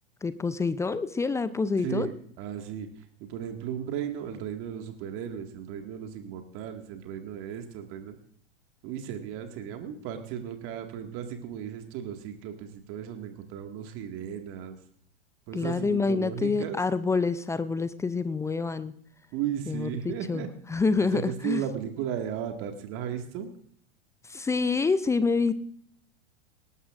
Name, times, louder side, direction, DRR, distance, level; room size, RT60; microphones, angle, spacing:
voice 1, 0.2-2.1 15.5-18.9 19.7-21.6 24.3-25.5, left 4 dB, 10° left, 15 dB, 0.5 m, -27 dB
voice 2, 1.8-2.9 3.2-8.1 8.8-14.8 15.5-16.8 19.3-20.5 20.8-23.5, right 9 dB, 40° right, 5 dB, 2.0 m, -35 dB
19.0 x 18.5 x 2.5 m, 0.65 s
figure-of-eight pair, 95°, 33 cm